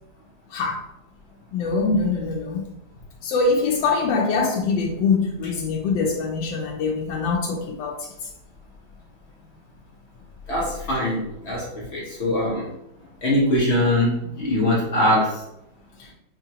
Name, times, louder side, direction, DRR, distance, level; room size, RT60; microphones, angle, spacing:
voice 1, 0.5-0.8 1.5-2.7 3.2-8.1 16.0-16.1, left 4 dB, 90° left, 0 dB, 1.3 m, -23 dB
voice 2, 10.5-12.7 13.2-15.3, left 1 dB, 50° left, -4 dB, 0.9 m, -22 dB
5.0 x 2.4 x 2.8 m, 0.81 s
omnidirectional pair, 1.9 m